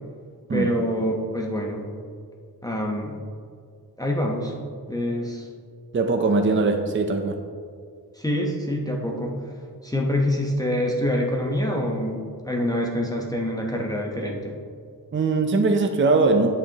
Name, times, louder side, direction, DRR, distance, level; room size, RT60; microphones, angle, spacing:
voice 1, 0.5-1.9 2.6-3.2 4.0-4.5 4.9-5.5 8.2-9.4 9.8-14.6, left 1 dB, 10° left, -1 dB, 0.9 m, -26 dB
voice 2, 5.9-7.4 15.1-16.5, right 3 dB, 30° right, 4 dB, 0.6 m, -21 dB
10.5 x 6.9 x 2.9 m, 2.2 s
wide cardioid pair, 110°, 40 cm